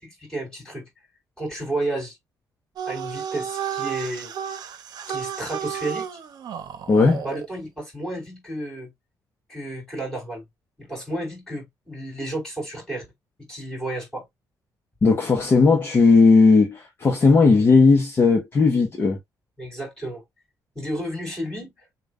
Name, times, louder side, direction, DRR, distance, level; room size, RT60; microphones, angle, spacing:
voice 1, 0.0-0.9 1.4-2.2 2.9-4.3 5.1-6.1 7.2-8.9 9.5-10.4 10.8-13.1 13.4-14.2 19.6-20.2 20.8-21.7, right 1 dB, 5° left, 3.5 m, -32 dB
sound 1, 2.8-7.5, right 8 dB, 60° right, 0.8 m, -32 dB
voice 2, 6.9-7.2 15.0-19.2, left 4 dB, 30° left, 0.8 m, -16 dB
6.9 x 2.3 x 2.5 m
cardioid pair, 160°, 8 cm